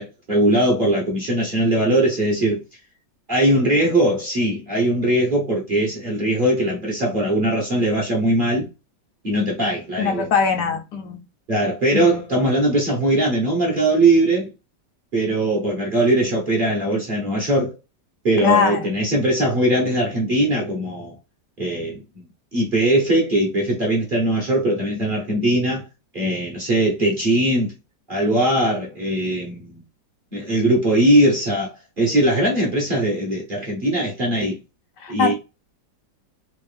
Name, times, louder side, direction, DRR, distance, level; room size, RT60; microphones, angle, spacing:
voice 1, 0.0-2.6 3.3-8.7 9.2-10.3 11.5-14.5 15.1-17.7 18.2-21.1 21.6-22.3 22.5-25.8 26.1-27.7 28.1-29.8 30.3-34.6 35.1-35.3, right 1 dB, 40° right, 0.9 m, -20 dB
voice 2, 10.0-11.2 11.9-12.2 18.4-18.9 35.0-35.3, left 6 dB, 75° left, 1.3 m, -21 dB
3.5 x 2.4 x 3.3 m
omnidirectional pair, 1.9 m